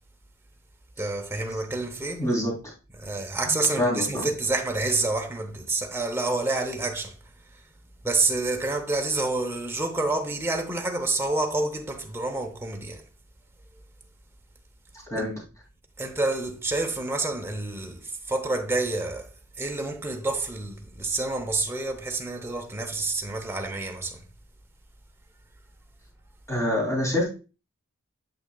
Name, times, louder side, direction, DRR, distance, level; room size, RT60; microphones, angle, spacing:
voice 1, 1.0-2.3 2.9-7.2 8.0-13.0 15.2-15.3 16.0-19.3 19.6-24.2, right 2 dB, 10° right, 0.8 m, -28 dB
voice 2, 2.2-2.5 3.8-4.3 15.1-15.4 26.5-27.2, left 1 dB, 15° left, 2.5 m, -25 dB
7.6 x 5.7 x 2.3 m
head